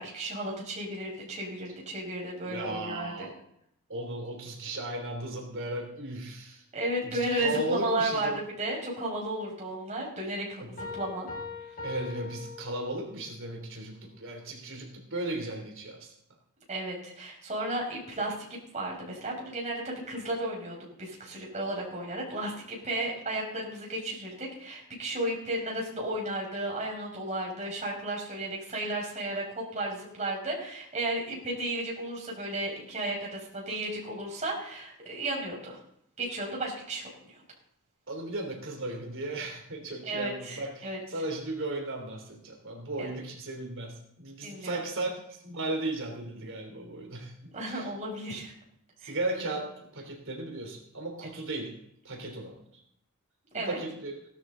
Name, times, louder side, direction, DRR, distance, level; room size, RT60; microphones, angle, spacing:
voice 1, 0.0-3.3 6.7-11.3 16.7-35.8 36.2-37.4 40.0-41.0 43.0-43.1 44.4-44.8 47.5-48.5 49.0-49.2 53.5-53.8, right 1 dB, 35° right, -2 dB, 5.8 m, -34 dB
voice 2, 2.4-3.4 3.9-6.6 7.0-8.4 10.6-10.7 11.8-16.1 38.1-47.9 49.0-51.8 52.0-52.6 53.5-54.2, right 2 dB, 60° right, 2 dB, 3.5 m, -36 dB
Piano, 10.8-13.3, left 4 dB, 40° left, 5.1 m, -41 dB
17.5 x 12.5 x 3.9 m, 0.73 s
head